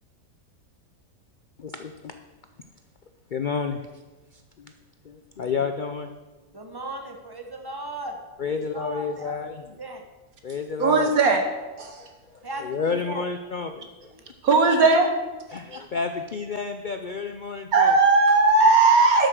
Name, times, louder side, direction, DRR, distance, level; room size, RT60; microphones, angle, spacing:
voice 1, 1.6-2.1 3.3-3.8 4.6-4.7 5.0-6.1 8.4-9.6 10.4-11.1 12.3-13.9 15.5-17.9, left 5 dB, 60° left, 7 dB, 0.5 m, -30 dB
voice 2, 6.5-10.0 12.4-13.2, right 2 dB, 15° right, 3 dB, 1.3 m, -37 dB
voice 3, 10.8-11.4 11.8-12.1 14.4-15.1 15.7-15.8 17.7-19.3, right 3 dB, 70° right, 4 dB, 1.9 m, -18 dB
12.0 x 6.6 x 6.4 m, 1.2 s
omnidirectional pair, 1.6 m